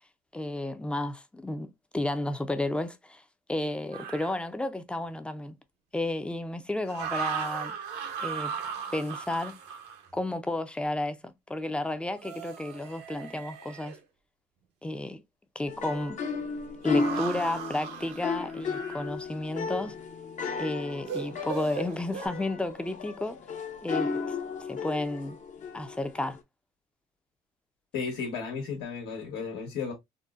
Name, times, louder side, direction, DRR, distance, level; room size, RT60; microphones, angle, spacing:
voice 1, 0.3-3.2 3.5-5.5 5.9-7.8 8.2-8.5 8.9-9.6 10.1-14.0 14.8-15.2 15.6-16.2 16.8-19.9 20.6-23.4 23.8-25.4 25.7-26.4, left 1 dB, 5° left, 0.4 m, -32 dB
sound 1, 3.9-4.3 6.9-10.1 12.1-14.0 16.8-19.1 21.1-22.3, right 6 dB, 80° right, 0.8 m, -37 dB
sound 2, 15.7-26.4, left 4 dB, 45° left, 0.6 m, -35 dB
voice 2, 27.9-29.9, left 5 dB, 85° left, 1.2 m, -34 dB
3.9 x 2.1 x 2.3 m
cardioid pair, 110°, 17 cm